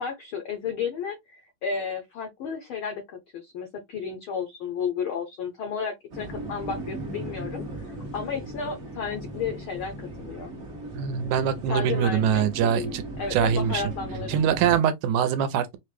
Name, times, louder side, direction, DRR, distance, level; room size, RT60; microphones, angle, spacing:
voice 1, 0.0-10.5 11.7-14.9, left 6 dB, 85° left, 1.1 m, -33 dB
sound 1, 6.1-14.8, right 2 dB, 65° right, 0.6 m, -37 dB
voice 2, 10.9-13.0 13.3-13.8 14.3-15.8, right 8 dB, 85° right, 2.0 m, -23 dB
5.5 x 2.2 x 3.1 m
omnidirectional pair, 3.4 m